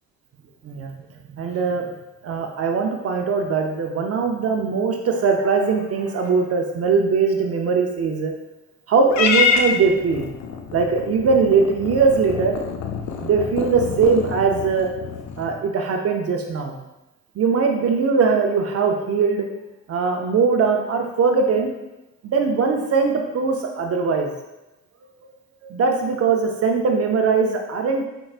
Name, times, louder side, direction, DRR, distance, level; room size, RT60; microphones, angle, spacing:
voice 1, 1.3-1.9 2.2-8.3 8.9-10.3 10.7-12.5 13.2-14.9 15.4-16.8 17.4-19.5 19.9-21.7 22.2-24.3 25.7-28.1, right 5 dB, 50° right, 3 dB, 0.6 m, -20 dB
Purr / Meow, 9.1-15.6, left 5 dB, 65° left, 0.6 m, -26 dB
4.6 x 4.4 x 2.4 m, 0.98 s
cardioid pair, 90°, 30 cm